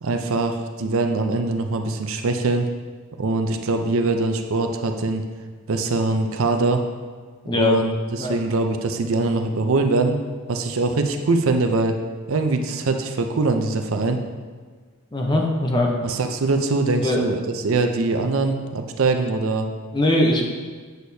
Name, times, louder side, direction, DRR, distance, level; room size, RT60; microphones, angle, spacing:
voice 1, 0.0-2.7 3.2-5.2 5.7-6.8 7.5-10.2 10.5-12.0 12.3-14.2 16.0-19.7, right 3 dB, 65° right, 5 dB, 0.5 m, -22 dB
voice 2, 7.5-7.8 8.2-8.4 15.1-16.0 17.0-17.2 19.9-20.4, left 1 dB, 20° left, 1 dB, 0.7 m, -20 dB
7.9 x 6.5 x 2.7 m, 1.5 s
head